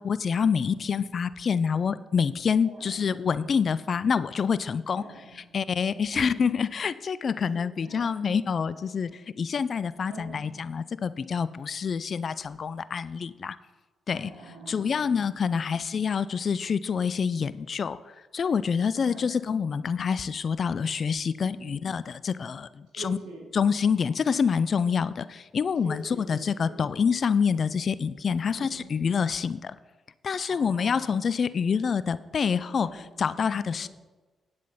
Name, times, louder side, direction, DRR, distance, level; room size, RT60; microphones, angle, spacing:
voice 1, 0.0-5.0 5.5-13.6 14.1-14.3 14.7-23.2 23.5-29.7 30.2-32.9 33.2-33.9, left 6 dB, 55° left, 16 dB, 0.5 m, -27 dB
voice 2, 2.6-3.3 5.0-5.5 6.1-6.6 7.5-8.1 10.1-10.5 14.1-15.1 15.5-15.8 19.0-19.4 21.4-21.8 22.9-23.5 25.8-26.8 28.4-29.0 30.5-31.2 32.8-33.3 33.8-33.9, right 1 dB, 85° right, -2 dB, 2.6 m, -45 dB
9.6 x 7.5 x 5.5 m, 1.2 s
hypercardioid pair, 45°, 0 cm